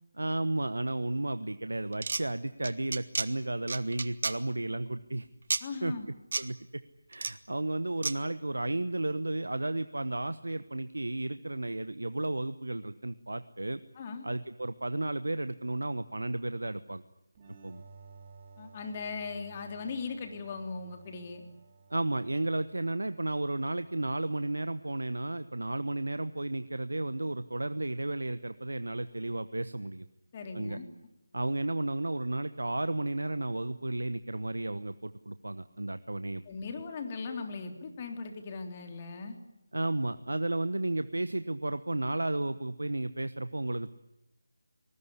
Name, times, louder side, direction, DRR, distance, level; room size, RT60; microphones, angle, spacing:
voice 1, 0.1-5.3 5.8-5.9 6.4-6.8 7.1-13.8 14.2-17.0 17.6-17.8 21.9-30.1 30.5-30.8 31.3-36.4 39.7-43.9, right 2 dB, 80° right, 12 dB, 1.1 m, -33 dB
sound 1, 1.9-2.2 2.6-3.3 3.7-4.4 5.5-5.6 6.3-6.4 7.1-7.3 8.0-8.1, right 4 dB, 50° right, 1.4 m, -31 dB
voice 2, 5.6-6.1 14.0-14.2 18.6-21.5 30.3-30.9 36.5-39.4, left 4 dB, 25° left, 5 dB, 3.5 m, -39 dB
sound 2, 17.4-24.8, right 5 dB, 25° right, 5.3 m, -56 dB
24.5 x 20.0 x 9.8 m, 0.92 s
figure-of-eight pair, 160°, 0 cm